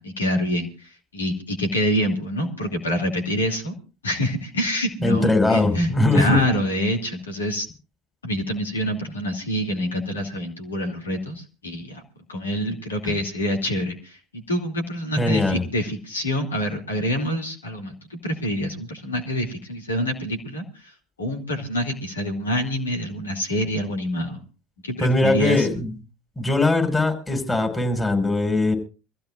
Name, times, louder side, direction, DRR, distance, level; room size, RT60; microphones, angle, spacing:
voice 1, 0.0-3.7 4.0-7.7 8.2-12.0 12.3-20.9 21.2-24.4 24.8-25.7, equal, 85° left, 3 dB, 2.7 m, -26 dB
voice 2, 5.0-6.4 13.0-13.1 15.2-15.6 25.0-25.9 26.4-28.7, left 2 dB, 15° left, 3 dB, 6.0 m, -20 dB
25.0 x 15.5 x 2.5 m, 0.33 s
figure-of-eight pair, 65°, 0 cm